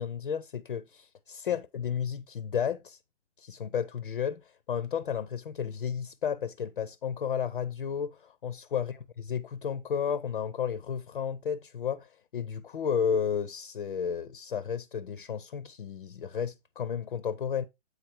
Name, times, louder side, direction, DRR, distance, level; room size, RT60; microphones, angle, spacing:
voice 1, 0.0-3.0 3.4-17.6, left 7 dB, 45° left, 0.5 m, -32 dB
8.1 x 4.0 x 4.3 m
hypercardioid pair, 155°, 37 cm